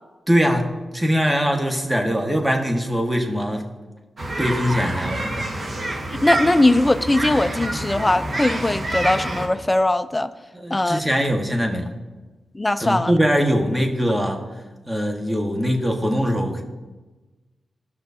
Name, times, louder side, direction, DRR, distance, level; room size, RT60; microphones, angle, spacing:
voice 1, 0.3-0.7 0.9-3.6 4.4-5.5 10.5-11.9 12.8-14.4 14.9-16.6, equal, 15° right, 2 dB, 1.5 m, -22 dB
sound 1, 4.2-9.5, right 1 dB, 50° right, 1.5 m, -27 dB
voice 2, 6.1-10.3 10.7-11.0 12.5-13.2, left 2 dB, 20° left, 12 dB, 0.5 m, -20 dB
16.5 x 6.0 x 2.8 m, 1.2 s
cardioid pair, 70°, 0 cm